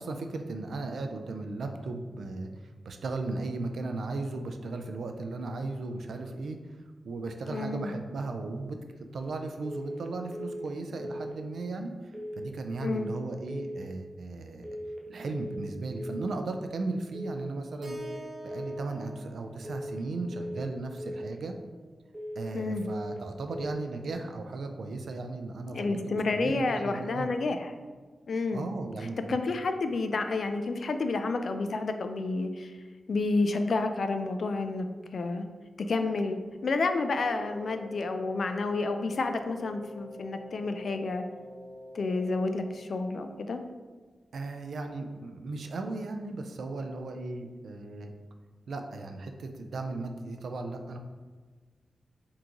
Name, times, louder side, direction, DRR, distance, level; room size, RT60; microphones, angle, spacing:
voice 1, 0.0-6.6 7.0-8.8 9.1-11.9 12.4-14.7 15.1-18.0 18.4-21.5 22.4-27.3 28.5-29.4 44.3-48.1 48.7-51.0, right 3 dB, 75° right, 5 dB, 0.4 m, -36 dB
voice 2, 7.5-7.9 12.8-13.1 22.5-22.9 25.7-27.7 28.3-28.6 29.3-32.7 33.1-34.9 35.1-35.4 35.8-41.2 41.9-43.6, left 3 dB, 55° left, 7 dB, 0.3 m, -30 dB
sound 1, 9.6-10.0 10.3-10.7 11.0-11.4 12.1-12.5 12.8-13.2 13.5-13.9 14.6-15.0 15.3-15.7 16.0-16.4 17.1-17.5 17.8-18.2 18.5-18.9 19.6-20.0 20.3-20.7 21.0-21.4 22.1-22.5 22.8-23.2 23.5-23.9, equal, 15° right, 0.6 m, -38 dB
Keyboard (musical), 17.8-22.0, right 1 dB, 55° right, 1.1 m, -49 dB
Wind instrument woodwind instrument, 37.1-42.9, left 1 dB, 25° left, 1.5 m, -46 dB
3.7 x 2.9 x 3.7 m, 1.4 s
wide cardioid pair, 155°, 0 cm